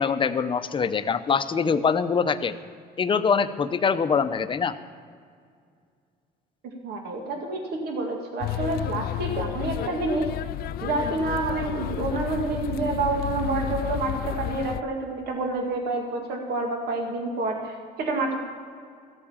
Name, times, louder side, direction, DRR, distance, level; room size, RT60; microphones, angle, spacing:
voice 1, 0.0-2.5 3.0-4.7, left 6 dB, 30° left, 11 dB, 0.7 m, -24 dB
voice 2, 6.8-10.3 10.8-18.4, right 3 dB, 70° right, 2 dB, 2.0 m, -28 dB
sound 1, 8.4-14.8, left 12 dB, 65° left, 0.4 m, -31 dB
15.0 x 8.6 x 7.2 m, 2.2 s
cardioid pair, 110°, 17 cm